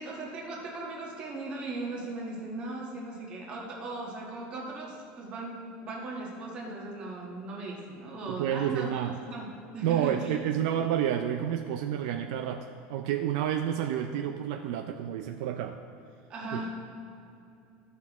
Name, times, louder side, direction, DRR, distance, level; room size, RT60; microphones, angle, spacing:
voice 1, 0.0-8.9 9.3-10.4 16.3-16.7, right 2 dB, 25° right, -2 dB, 1.4 m, -38 dB
voice 2, 8.3-9.2 9.8-15.8 16.5-16.6, right 10 dB, 65° right, 5 dB, 0.4 m, -30 dB
14.5 x 5.8 x 3.0 m, 2.7 s
cardioid pair, 180°, 4 cm